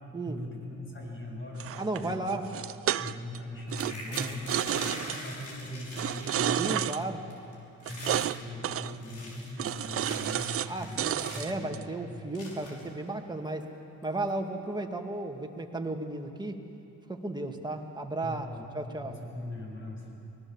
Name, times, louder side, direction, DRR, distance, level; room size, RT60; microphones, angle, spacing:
voice 1, 0.2-2.3 3.0-7.2 7.9-11.1 11.3-12.2 18.2-18.7 19.0-20.1, left 1 dB, 40° left, -1 dB, 7.3 m, -40 dB
sound 1, 1.6-3.4 3.7-5.2 5.9-7.0 7.9-8.4 8.6-9.0 9.6-10.7 11.0-11.8, right 11 dB, 50° right, 0.6 m, -31 dB
voice 2, 1.8-2.5 4.1-4.4 6.5-7.2 8.1-8.2 10.7-13.7 14.0-16.6 17.1-18.5 18.7-19.2, right 2 dB, 15° right, 3 dB, 2.0 m, -34 dB
sound 2, 3.7-7.0 7.3-7.5 7.8-8.4 8.9-11.6 12.3-12.9 13.6-13.7 14.0-14.3, left 2 dB, 80° left, 5.6 m, -43 dB
25.0 x 19.0 x 7.2 m, 2.7 s
cardioid pair, 90°, 30 cm